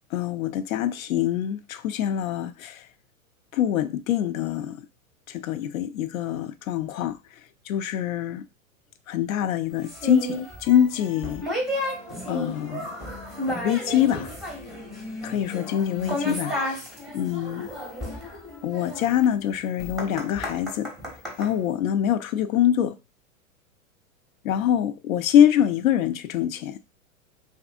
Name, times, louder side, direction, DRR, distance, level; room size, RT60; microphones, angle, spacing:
voice 1, 0.1-2.8 3.5-4.8 5.3-7.2 7.7-8.4 9.1-11.4 12.3-12.9 13.6-14.3 15.2-16.8 17.1-17.7 18.6-20.9 21.4-22.9 24.4-26.8, left 10 dB, 70° left, 0.5 m, -24 dB
sound 1, 9.8-21.5, left 1 dB, ahead, 0.6 m, -33 dB
2.6 x 2.5 x 2.5 m
hypercardioid pair, 105°, 42 cm